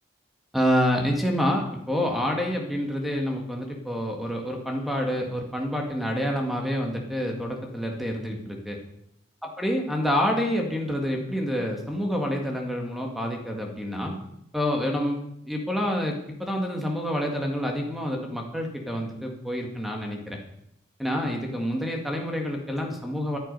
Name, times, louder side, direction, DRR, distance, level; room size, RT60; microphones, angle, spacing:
voice 1, 0.5-8.8 9.4-14.2 14.5-15.2 15.5-20.4 21.0-23.4, equal, ahead, 1 dB, 1.9 m, -27 dB
13.5 x 10.5 x 5.4 m, 0.79 s
head